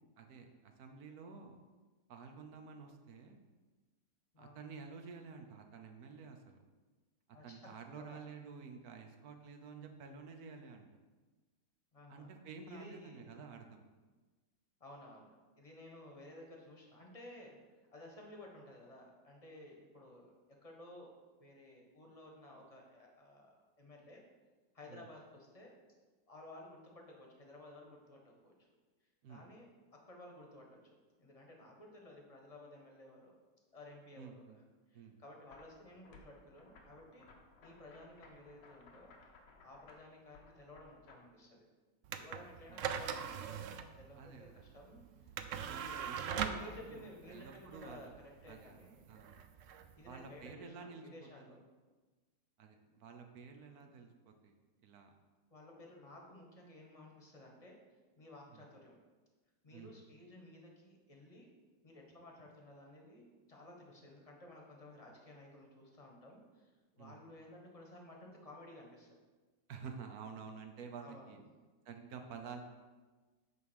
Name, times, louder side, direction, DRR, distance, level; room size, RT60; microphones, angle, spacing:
voice 1, 0.2-1.6 2.1-3.4 4.4-6.6 7.4-10.9 12.1-13.9 24.9-25.1 29.2-29.5 34.2-34.6 34.9-35.2 42.7-42.9 44.2-44.6 45.7-48.1 48.5-48.8 49.1-49.4 50.1-51.6 52.6-54.5 54.8-55.1 58.5-58.6 59.7-59.9 67.0-67.2 69.7-71.4 71.8-72.6, right 5 dB, 60° right, 5 dB, 1.3 m, -51 dB
voice 2, 11.9-12.3 12.7-13.5 14.8-17.6 17.9-20.3 20.6-21.1 21.4-24.2 24.7-25.7 26.3-28.5 29.3-29.7 30.0-30.8 31.2-33.3 33.7-34.6 34.9-37.2 37.6-39.1 39.6-41.7 42.1-45.0 45.7-49.2 49.9-51.6 53.7-54.0 55.5-57.8 58.1-58.9 59.6-61.5 61.8-69.1 71.0-71.3, left 1 dB, 20° left, 0 dB, 1.2 m, -55 dB
sound 1, 35.5-41.2, left 3 dB, 80° left, 1.6 m, -61 dB
sound 2, 42.0-50.5, right 8 dB, 85° right, 0.6 m, -42 dB
9.5 x 3.6 x 6.4 m, 1.3 s
omnidirectional pair, 1.9 m